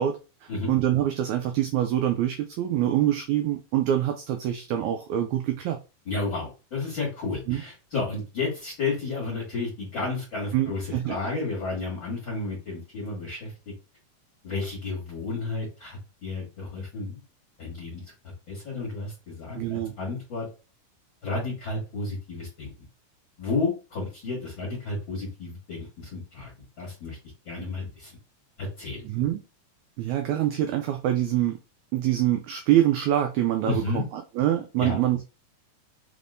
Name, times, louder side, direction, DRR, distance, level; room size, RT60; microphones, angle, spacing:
voice 1, 0.0-5.8 7.5-7.6 10.5-11.2 19.5-19.9 29.0-29.4 30.0-31.6 31.9-35.2, right 12 dB, 90° right, 1.6 m, -25 dB
voice 2, 6.1-13.5 14.4-17.2 17.6-20.5 21.2-22.7 23.4-26.5 26.8-27.2 27.4-28.1 28.6-29.0 33.7-34.0 34.8-35.0, left 3 dB, 40° left, 2.2 m, -32 dB
5.0 x 3.5 x 2.6 m
omnidirectional pair, 3.9 m